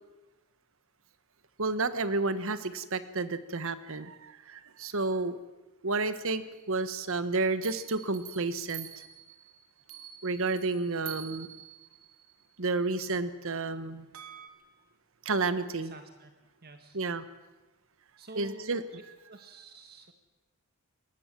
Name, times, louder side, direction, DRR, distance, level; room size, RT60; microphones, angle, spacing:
voice 1, 1.6-5.4 5.8-9.0 10.2-11.5 12.6-14.1 15.2-15.9 16.9-17.2 18.3-18.8, right 3 dB, 65° right, 12 dB, 1.4 m, -31 dB
sound 1, 6.5-7.1 7.6-12.6 14.1-14.5, right 11 dB, 85° right, 2.6 m, -47 dB
voice 2, 15.7-16.3 16.6-17.0 18.2-18.8 19.3-20.1, right 2 dB, 45° right, 6 dB, 1.6 m, -49 dB
23.0 x 19.0 x 7.6 m, 1.1 s
head